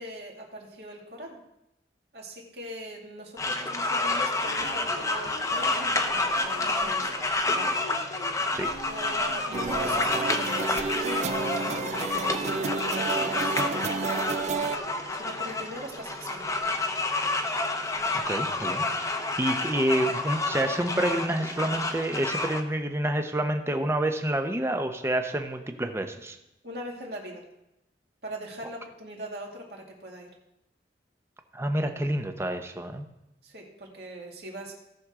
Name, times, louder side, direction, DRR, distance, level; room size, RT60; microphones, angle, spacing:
voice 1, 0.0-1.4 2.1-7.8 8.8-16.4 26.6-27.4 28.2-30.3 33.4-34.8, right 1 dB, 65° right, -1 dB, 2.3 m, -41 dB
sound 1, 3.4-22.6, left 2 dB, 20° left, 0.8 m, -29 dB
sound 2, 4.4-22.0, left 2 dB, 75° left, 0.8 m, -48 dB
sound 3, 9.5-14.8, right 4 dB, 40° right, 0.4 m, -31 dB
voice 2, 18.3-18.9 19.4-26.4 31.5-33.1, right 1 dB, 15° right, 6 dB, 0.7 m, -28 dB
17.0 x 6.3 x 3.7 m, 0.89 s
head